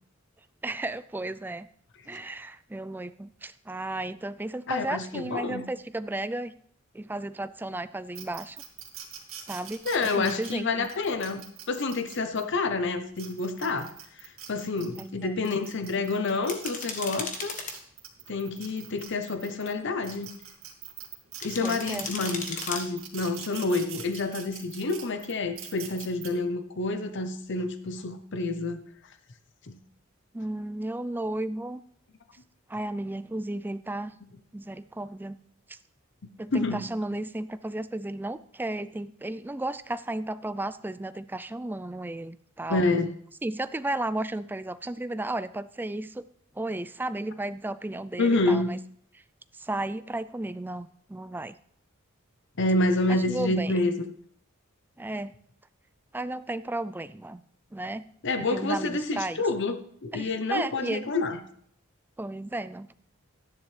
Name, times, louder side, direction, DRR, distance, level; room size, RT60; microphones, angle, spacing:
voice 1, 0.6-1.7 2.1-6.5 6.9-8.6 9.5-10.9 15.0-15.3 21.6-22.1 30.3-31.8 32.7-34.1 34.5-35.4 35.7-35.8 36.4-42.8 43.4-46.3 46.5-48.8 49.1-49.2 49.5-51.6 53.1-53.7 55.0-55.3 56.1-57.4 57.7-58.1 58.4-59.4 60.1-61.1 62.2-62.9, right 2 dB, 10° right, 14 dB, 0.3 m, -34 dB
voice 2, 4.7-5.6 9.8-17.5 18.3-20.3 21.4-28.8 29.7-29.8 36.5-36.8 42.7-43.1 48.2-48.7 52.6-54.1 58.2-61.4, left 3 dB, 60° left, 9 dB, 0.8 m, -28 dB
sound 1, 8.2-12.4 13.0-15.0 15.4-19.7 20.0-26.3, right 9 dB, 70° right, 2.2 m, -43 dB
sound 2, 16.5-17.8 21.4-22.8, left 4 dB, 40° left, 1.3 m, -35 dB
13.0 x 10.5 x 3.3 m, 0.64 s
head